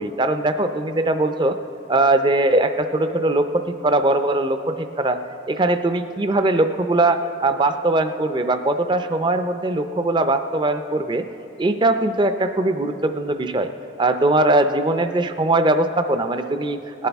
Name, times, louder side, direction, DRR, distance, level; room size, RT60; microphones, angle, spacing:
voice 1, 0.0-1.6 1.9-5.2 5.5-11.2 11.6-13.7 14.0-17.1, right 2 dB, 25° right, 9 dB, 0.4 m, -20 dB
19.0 x 11.0 x 3.5 m, 2.8 s
head